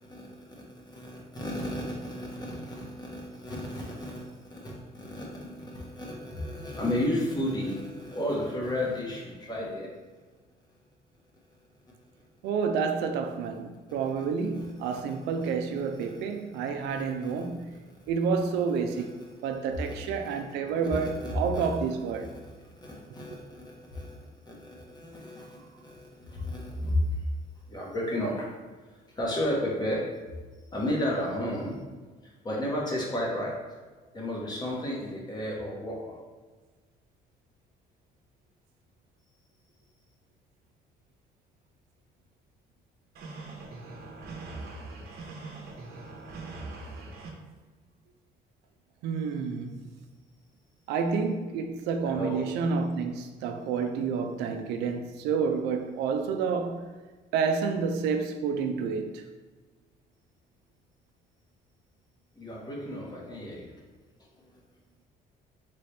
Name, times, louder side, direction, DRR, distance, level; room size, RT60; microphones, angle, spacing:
voice 1, 0.0-9.9 14.2-15.5 15.9-16.4 16.9-17.5 17.9-18.4 18.9-19.3 19.8-27.2 27.7-28.5 28.9-30.1 30.7-31.8 32.2-33.6 34.1-36.2 52.0-52.5 62.3-63.7, left 1 dB, 25° left, 1.4 m, -34 dB
voice 2, 12.4-17.7 18.1-22.3 49.0-49.9 50.9-56.9 57.3-59.2, right 5 dB, 90° right, 0.5 m, -29 dB
sound 1, 43.1-47.3, right 3 dB, 70° right, 1.0 m, -42 dB
4.2 x 3.7 x 3.3 m
cardioid pair, 110°, 17 cm